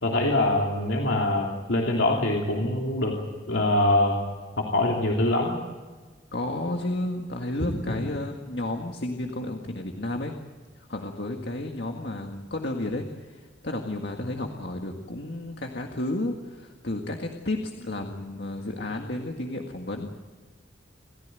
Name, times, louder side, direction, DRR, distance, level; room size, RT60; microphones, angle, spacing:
voice 1, 0.0-3.2 3.5-4.2 4.6-5.5 7.6-7.8, left 1 dB, 85° left, -1 dB, 3.1 m, -24 dB
voice 2, 6.3-10.4 10.8-20.1, left 1 dB, 65° left, 3 dB, 1.8 m, -32 dB
28.5 x 15.0 x 9.2 m, 1.4 s
head